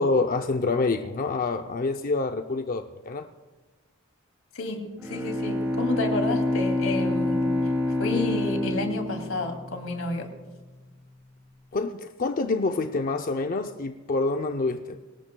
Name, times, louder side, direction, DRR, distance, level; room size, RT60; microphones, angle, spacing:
voice 1, 0.0-3.3 11.7-15.0, left 3 dB, 45° left, 6 dB, 0.5 m, -27 dB
voice 2, 4.5-7.5 8.0-10.3, left 2 dB, 90° left, 4 dB, 2.7 m, -30 dB
Bowed string instrument, 5.0-10.2, left 1 dB, 10° right, 4.9 m, -27 dB
24.0 x 18.0 x 2.3 m, 1.2 s
head